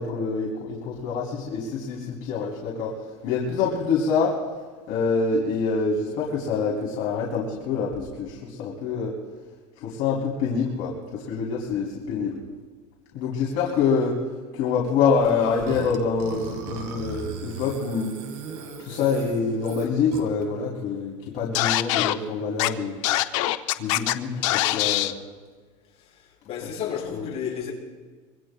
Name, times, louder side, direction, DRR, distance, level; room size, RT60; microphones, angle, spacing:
voice 1, 0.0-2.9 3.2-4.3 4.9-9.1 9.8-12.4 13.1-14.1 14.5-18.1 18.8-23.0 23.8-25.1 27.1-27.2, left 5 dB, 60° left, 3.0 m, -26 dB
Burping eructation, 15.7-20.4, right 6 dB, 65° right, 1.9 m, -37 dB
Scratching (performance technique), 21.5-22.1 22.6-22.7 23.0-24.1 24.4-25.1, left 16 dB, 85° left, 0.7 m, -23 dB
voice 2, 26.0-27.7, left 8 dB, 40° left, 6.7 m, -33 dB
25.0 x 23.0 x 2.3 m
cardioid pair, 145°, 16 cm